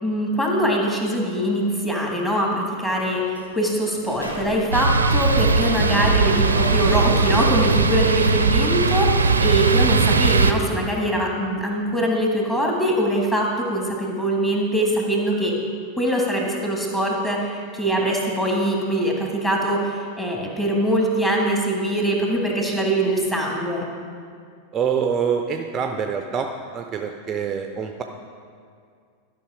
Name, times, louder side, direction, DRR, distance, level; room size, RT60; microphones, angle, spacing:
voice 1, 0.0-15.5 16.0-23.9, right 1 dB, 10° left, -2 dB, 1.8 m, -23 dB
Sliding door, 3.3-3.5 3.8-8.8, equal, 85° left, 1.1 m, -33 dB
sound 1, 4.7-10.5, right 4 dB, 75° right, 0.5 m, -19 dB
voice 2, 24.7-28.0, right 6 dB, 25° right, 5 dB, 0.5 m, -25 dB
12.5 x 5.7 x 4.9 m, 2.2 s
figure-of-eight pair, 90°, 0 cm